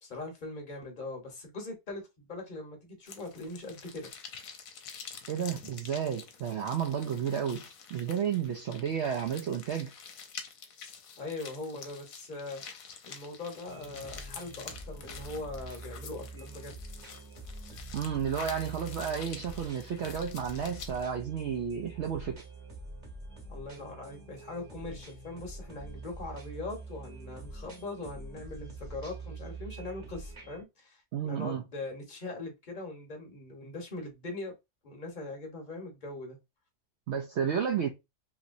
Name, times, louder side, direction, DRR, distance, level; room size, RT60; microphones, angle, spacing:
voice 1, 0.0-4.1 11.2-16.8 23.5-34.5 34.8-36.4, left 2 dB, 35° left, 1.0 m, -41 dB
sound 1, 3.1-21.1, left 6 dB, 65° left, 1.0 m, -48 dB
voice 2, 5.3-7.6 7.9-9.9 17.9-22.4 31.1-31.6 37.1-37.9, right 8 dB, 75° right, 0.6 m, -32 dB
sound 2, 13.7-30.6, right 3 dB, 30° right, 0.9 m, -45 dB
3.0 x 2.9 x 2.5 m
omnidirectional pair, 1.7 m